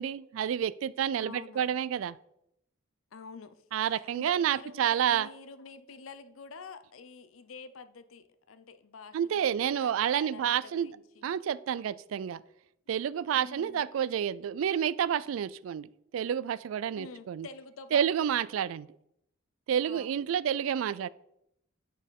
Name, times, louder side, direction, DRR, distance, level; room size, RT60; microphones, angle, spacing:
voice 1, 0.0-2.2 3.7-5.3 9.1-10.9 11.2-12.4 12.9-15.9 16.1-17.5 17.9-18.9 19.7-21.1, right 9 dB, 80° right, 20 dB, 0.3 m, -29 dB
voice 2, 1.2-1.8 3.1-3.6 3.9-11.3 13.3-13.8 17.0-18.3 19.8-20.1, left 4 dB, 90° left, 11 dB, 0.6 m, -48 dB
9.7 x 4.2 x 5.3 m, 0.80 s
head